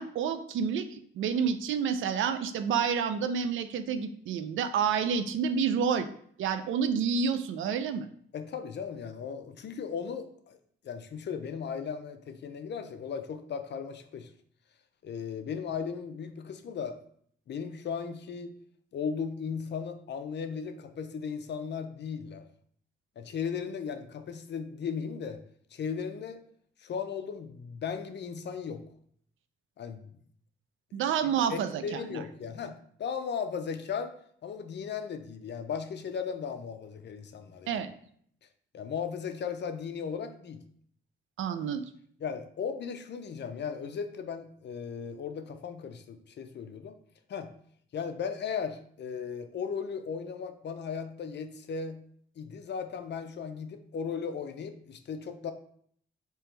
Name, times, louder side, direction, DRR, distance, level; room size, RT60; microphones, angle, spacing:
voice 1, 0.0-6.1 6.4-8.1 30.9-32.2 37.7-37.9 41.4-41.8, right 7 dB, 90° right, 10 dB, 0.4 m, -29 dB
voice 2, 8.3-10.6 10.8-14.3 15.0-16.9 17.5-18.5 18.9-22.4 23.2-25.4 25.7-26.4 26.8-28.8 29.8-30.1 31.2-34.1 34.4-37.8 38.7-40.6 42.2-46.9 47.3-47.5 47.9-52.0 52.4-55.5, left 6 dB, 60° left, 8 dB, 0.6 m, -36 dB
3.4 x 3.0 x 4.4 m, 0.62 s
cardioid pair, 75°, 20 cm